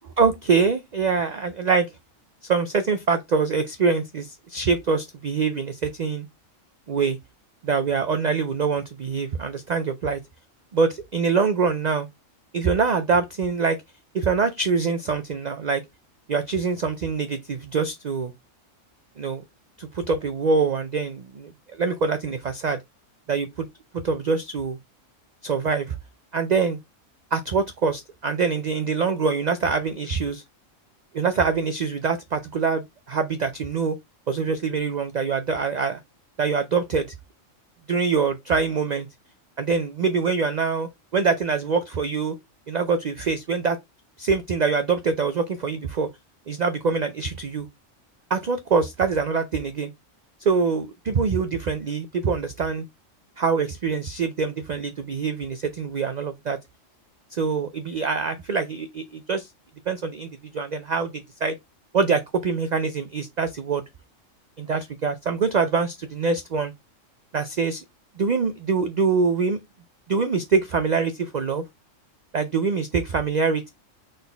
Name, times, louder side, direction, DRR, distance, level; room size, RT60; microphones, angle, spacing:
voice 1, 0.2-1.9 2.5-6.2 6.9-7.2 7.6-10.2 10.7-12.1 12.5-13.8 14.1-15.8 16.3-18.3 19.2-19.4 19.8-21.5 21.8-22.8 23.3-23.7 24.0-24.8 25.4-25.9 26.3-26.8 27.3-30.4 31.1-34.0 34.3-36.0 36.4-37.1 37.9-39.1 39.6-42.4 42.7-43.8 44.2-46.1 46.5-47.7 48.3-49.9 50.4-52.8 53.4-56.6 57.3-59.5 59.9-61.5 61.9-63.8 64.6-66.7 67.3-67.8 68.2-69.6 70.1-71.6 72.3-73.7, right 5 dB, 60° right, 0.4 m, -24 dB
4.1 x 3.9 x 3.4 m
omnidirectional pair, 1.3 m